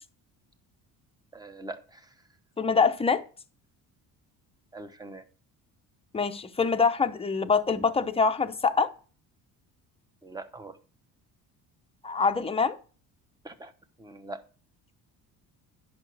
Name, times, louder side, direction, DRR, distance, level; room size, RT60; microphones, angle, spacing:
voice 1, 1.3-2.1 4.7-5.2 10.2-10.8 13.4-13.7 14.0-14.4, right 2 dB, 10° right, 1.0 m, -42 dB
voice 2, 2.6-3.2 6.1-8.9 12.0-12.8, left 5 dB, 15° left, 0.7 m, -24 dB
10.5 x 5.9 x 4.7 m
cardioid pair, 120°, 39 cm